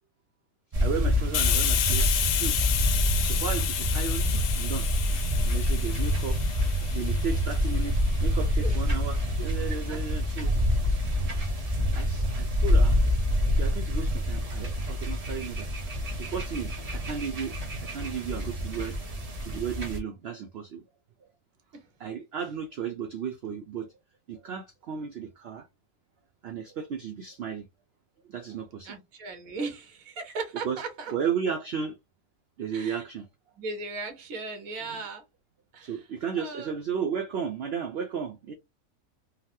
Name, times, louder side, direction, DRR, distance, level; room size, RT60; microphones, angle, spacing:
sound 1, 0.7-20.0, left 1 dB, 35° right, 0.6 m, -27 dB
voice 1, 0.8-2.6 3.2-4.3 4.6-4.9 5.5-6.4 6.9-10.5 11.9-13.0 13.5-15.7 16.2-17.5 17.9-19.0 19.4-20.8 22.0-23.9 24.3-25.7 26.4-27.6 28.3-29.0 30.6-30.8 31.1-31.9 32.6-33.2 34.9-35.0 35.8-38.5, right 7 dB, 90° right, 0.5 m, -34 dB
Hiss, 1.3-8.7, left 10 dB, 90° left, 1.1 m, -31 dB
voice 2, 28.8-31.1 32.7-33.0 33.6-35.2 35.7-36.0 36.4-36.7, right 3 dB, 65° right, 1.4 m, -37 dB
4.0 x 2.1 x 2.6 m
omnidirectional pair, 1.6 m